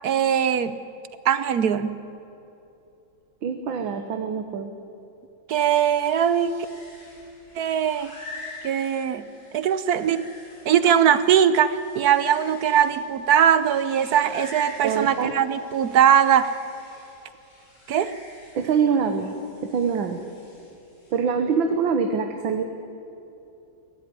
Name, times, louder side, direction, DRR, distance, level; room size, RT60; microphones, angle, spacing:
voice 1, 0.0-0.8 1.2-2.0 5.5-6.6 7.6-8.1 8.6-9.2 9.5-10.2 10.6-16.5 17.9-18.1, right 9 dB, 60° right, 13 dB, 1.1 m, -20 dB
voice 2, 3.4-4.7 14.8-15.3 18.6-19.4 19.7-20.2 21.1-22.6, right 6 dB, 80° right, 7 dB, 1.9 m, -24 dB
sound 1, 5.9-21.2, left 2 dB, 75° left, 7.6 m, -46 dB
22.5 x 17.5 x 9.6 m, 2.9 s
omnidirectional pair, 2.1 m